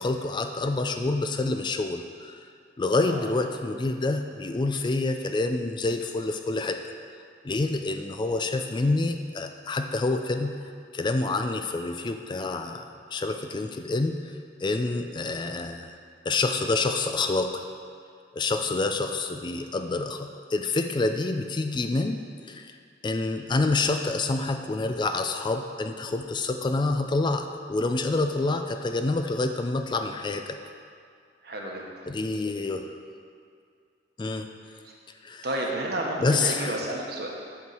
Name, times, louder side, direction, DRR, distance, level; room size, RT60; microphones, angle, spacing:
voice 1, 0.0-2.5 2.8-6.9 7.4-10.5 10.9-14.3 14.6-15.9 16.3-17.7 18.3-22.8 23.0-30.6 32.1-33.0 34.2-34.5 35.2-35.5 36.2-36.9, left 3 dB, 25° left, 6 dB, 0.3 m, -27 dB
voice 2, 31.4-32.0 34.8-34.9 35.4-37.3, right 1 dB, 60° right, -1 dB, 1.3 m, -31 dB
8.1 x 4.6 x 6.8 m, 2.2 s
head